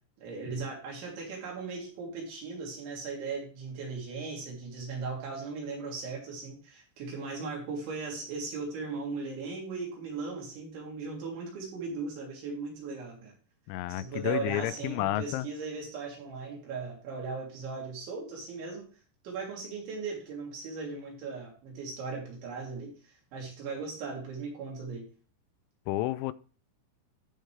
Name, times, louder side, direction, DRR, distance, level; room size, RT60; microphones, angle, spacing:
voice 1, 0.2-13.3 13.9-18.9 19.2-25.1, right 4 dB, 80° right, -2 dB, 5.5 m, -38 dB
voice 2, 13.7-15.5 25.9-26.3, left 16 dB, 90° left, 16 dB, 3.0 m, -31 dB
14.0 x 5.6 x 3.3 m, 0.38 s
omnidirectional pair, 5.3 m